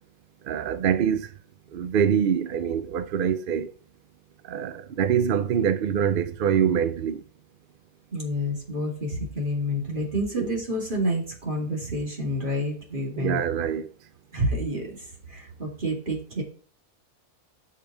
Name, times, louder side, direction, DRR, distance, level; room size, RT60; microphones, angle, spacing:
voice 1, 0.4-1.3 1.7-3.7 4.4-7.2 10.4-10.5 13.1-13.9, right 8 dB, 75° right, 0.5 m, -24 dB
voice 2, 8.1-13.4 14.3-15.0 15.3-16.4, equal, 35° right, 2.6 m, -28 dB
6.5 x 5.4 x 6.1 m
omnidirectional pair, 1.6 m